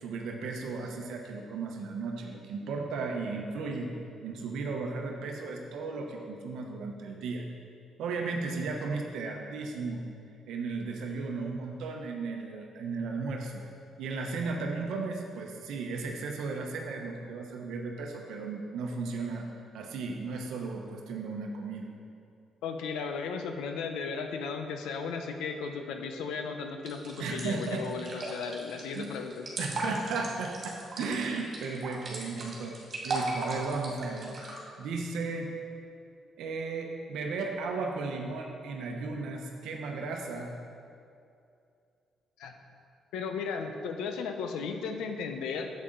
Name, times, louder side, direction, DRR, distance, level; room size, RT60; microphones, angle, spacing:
voice 1, 0.0-3.9 4.2-7.4 8.0-10.1 10.5-13.6 14.0-19.5 19.7-21.9 27.2-27.8 28.9-29.1 29.6-32.8 33.0-35.5 36.4-40.5, right 4 dB, 80° right, 2 dB, 0.8 m, -35 dB
voice 2, 22.6-29.5 42.4-42.6 43.1-45.7, left 5 dB, 90° left, 5 dB, 0.7 m, -35 dB
sound 1, 26.9-34.6, right 2 dB, 50° right, 2.0 m, -37 dB
8.4 x 7.5 x 3.8 m, 2.5 s
cardioid pair, 90°, 0 cm